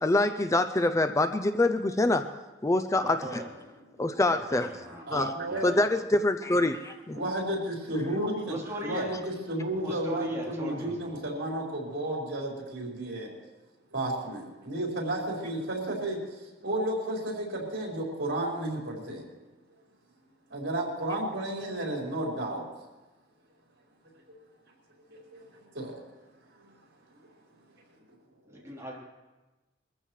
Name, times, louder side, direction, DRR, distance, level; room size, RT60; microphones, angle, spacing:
voice 1, 0.0-2.3 2.6-3.4 4.0-4.7 5.1-5.3 5.6-7.2, left 2 dB, 15° left, 9 dB, 0.5 m, -25 dB
voice 2, 3.0-3.5 4.3-5.0 5.4-5.8 8.5-9.1 9.8-11.2 28.5-29.0, right 1 dB, 15° right, -5 dB, 3.6 m, -39 dB
voice 3, 5.1-5.7 7.1-13.3 13.9-16.2 16.6-19.2 20.5-22.6 25.7-25.9, right 1 dB, 75° right, -3 dB, 4.7 m, -32 dB
22.5 x 14.5 x 3.2 m, 1.1 s
head